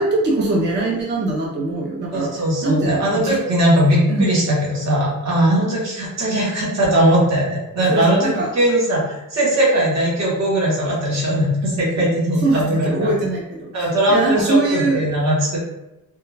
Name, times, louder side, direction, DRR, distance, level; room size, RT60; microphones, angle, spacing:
voice 1, 0.0-2.3 2.6-3.4 4.1-4.3 7.9-8.5 12.4-15.0, right 2 dB, 30° right, -2 dB, 0.4 m, -22 dB
voice 2, 2.1-13.1 13.7-15.6, right 1 dB, 50° right, -5 dB, 1.0 m, -19 dB
2.3 x 2.2 x 3.1 m, 0.96 s
wide cardioid pair, 175°, 35 cm